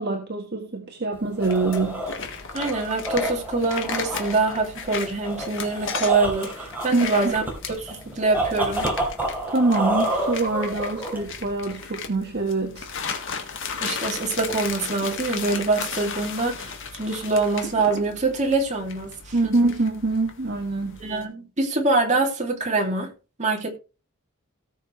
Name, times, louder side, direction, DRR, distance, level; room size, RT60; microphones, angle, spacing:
voice 1, 0.0-2.1 6.9-7.3 9.5-12.9 19.3-21.0, right 3 dB, 50° right, 1 dB, 1.6 m, -24 dB
sound 1, 1.1-11.5, right 1 dB, 10° right, 3.8 m, -30 dB
sound 2, 1.4-21.2, left 6 dB, 60° left, 1.8 m, -35 dB
voice 2, 2.5-8.9 13.8-19.1 19.4-19.5 21.0-23.1 23.4-23.8, right 3 dB, 35° right, 1 dB, 2.8 m, -24 dB
18.0 x 6.7 x 3.2 m, 0.32 s
head